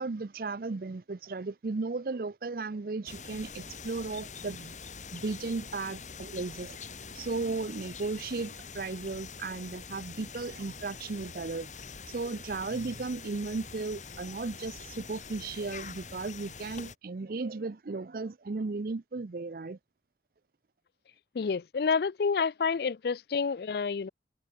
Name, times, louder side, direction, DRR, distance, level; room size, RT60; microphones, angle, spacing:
voice 1, 0.0-4.7 5.1-6.8 7.1-11.7 12.1-19.8, right 3 dB, 55° right, 0.5 m, -35 dB
sound 1, 3.1-17.0, left 5 dB, 40° left, 4.0 m, -45 dB
voice 2, 21.3-24.1, left 5 dB, 60° left, 0.4 m, -29 dB
head